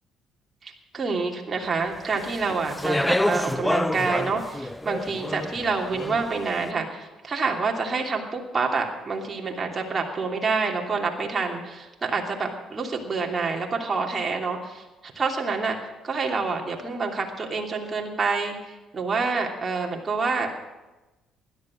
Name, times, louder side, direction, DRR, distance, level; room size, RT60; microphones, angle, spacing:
voice 1, 0.6-15.8 16.0-20.6, right 4 dB, 35° right, 1 dB, 2.9 m, -27 dB
Speech, 2.1-6.5, left 1 dB, 10° left, 0.5 m, -28 dB
16.5 x 12.0 x 6.4 m, 1.1 s
supercardioid pair, 80°, 0 cm